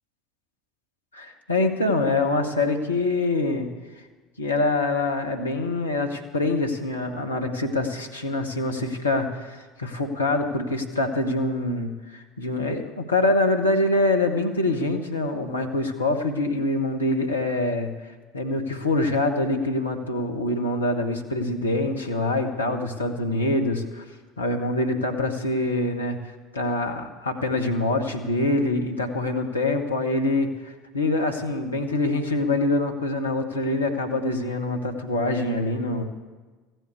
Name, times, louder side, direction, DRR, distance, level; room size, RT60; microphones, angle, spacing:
voice 1, 1.1-3.7 4.4-17.9 18.3-24.0 24.4-26.2 26.5-36.0, left 2 dB, 80° left, 4 dB, 1.2 m, -25 dB
15.0 x 7.8 x 8.3 m, 1.3 s
figure-of-eight pair, 65°, 0 cm